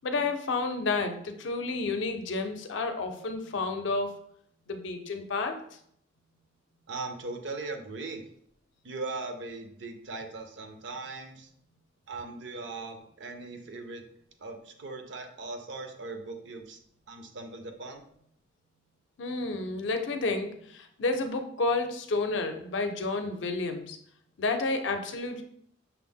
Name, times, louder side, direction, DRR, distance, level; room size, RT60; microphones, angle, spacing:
voice 1, 0.0-4.2 4.7-5.6 19.2-24.0 24.4-25.4, left 3 dB, 70° left, 6 dB, 0.5 m, -30 dB
voice 2, 6.9-8.2 8.8-11.5 12.1-14.1 14.4-16.8 17.1-18.0, right 3 dB, 65° right, 5 dB, 0.6 m, -39 dB
5.8 x 2.0 x 3.5 m, 0.67 s
head